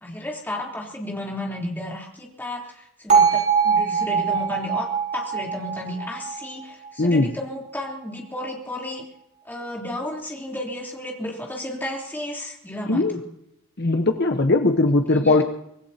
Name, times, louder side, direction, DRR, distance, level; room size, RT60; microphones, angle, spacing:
voice 1, 0.0-9.0 9.5-13.2 15.2-15.4, left 1 dB, 10° left, -3 dB, 3.6 m, -33 dB
Bell, 3.1-7.2, right 6 dB, 40° right, 5.8 m, -22 dB
voice 2, 7.0-7.3 12.9-13.2 13.8-15.4, left 2 dB, 55° left, 5 dB, 1.0 m, -19 dB
25.5 x 18.0 x 2.9 m, 0.78 s
head